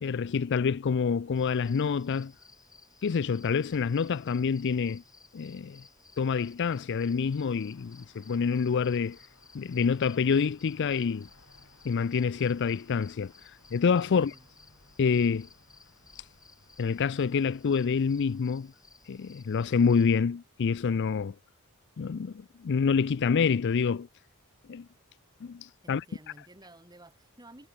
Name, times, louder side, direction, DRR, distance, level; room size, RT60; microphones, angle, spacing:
voice 1, 0.0-2.3 3.0-5.0 5.3-5.8 6.2-9.2 9.5-11.3 11.8-13.3 13.7-14.3 15.0-15.5 16.8-18.7 19.1-21.3 22.0-24.1 24.7-24.9 25.4-26.0, left 5 dB, 55° left, 0.4 m, -27 dB
sound 1, 1.3-20.2, left 4 dB, 15° left, 4.8 m, -58 dB
sound 2, 7.2-18.4, left 3 dB, 85° left, 3.4 m, -62 dB
voice 2, 14.0-14.5 25.8-27.7, right 1 dB, 20° right, 3.2 m, -53 dB
head